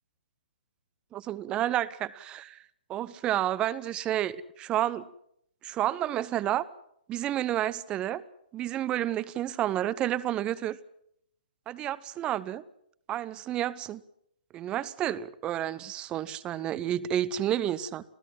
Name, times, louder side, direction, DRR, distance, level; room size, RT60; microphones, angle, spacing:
voice 1, 1.1-2.6 2.9-5.0 5.6-6.6 7.1-8.2 8.5-10.8 11.7-12.6 13.1-14.0 14.5-18.0, right 12 dB, 20° right, 19 dB, 0.9 m, -30 dB
27.0 x 16.5 x 7.7 m, 0.74 s
figure-of-eight pair, 125°, 5 cm